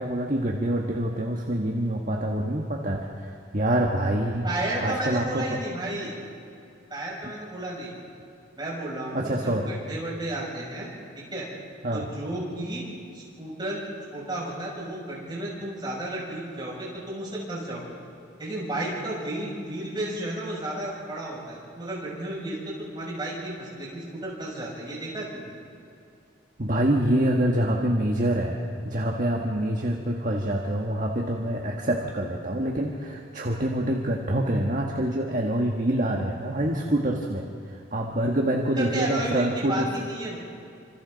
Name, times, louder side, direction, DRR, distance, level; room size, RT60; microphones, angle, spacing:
voice 1, 0.0-4.5 4.8-5.6 9.1-9.7 11.8-12.1 26.6-28.6 28.8-37.5 37.9-39.9, right 1 dB, 45° right, 0 dB, 1.5 m, -26 dB
voice 2, 4.4-6.1 6.9-7.9 8.6-10.9 11.2-11.5 11.9-12.8 13.1-13.8 14.1-17.9 18.4-25.6 38.8-40.4, right 1 dB, 25° right, -5 dB, 7.1 m, -33 dB
28.5 x 26.5 x 4.1 m, 2.5 s
head